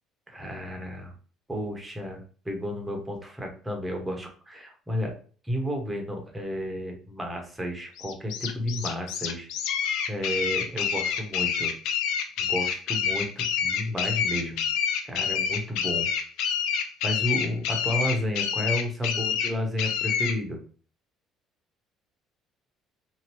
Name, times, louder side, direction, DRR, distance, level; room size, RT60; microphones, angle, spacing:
voice 1, 0.3-1.1 1.5-5.1 5.4-9.5 10.1-11.7 12.4-14.6 15.0-16.1 17.0-20.6, equal, 10° right, 2 dB, 0.9 m, -32 dB
sound 1, 8.0-20.4, left 7 dB, 80° left, 0.4 m, -28 dB
2.9 x 2.6 x 2.9 m, 0.42 s
cardioid pair, 100°, 0 cm